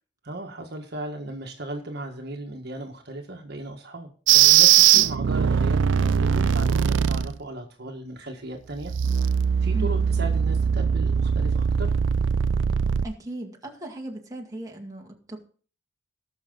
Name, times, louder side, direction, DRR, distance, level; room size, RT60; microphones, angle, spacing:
voice 1, 0.2-8.9 9.6-11.9, right 1 dB, 60° right, 3 dB, 1.5 m, -36 dB
sound 1, 4.3-7.3 8.8-13.1, right 8 dB, 85° right, 0.5 m, -20 dB
voice 2, 13.0-15.4, right 1 dB, 20° right, 0 dB, 2.0 m, -37 dB
19.0 x 6.5 x 3.9 m, 0.40 s
head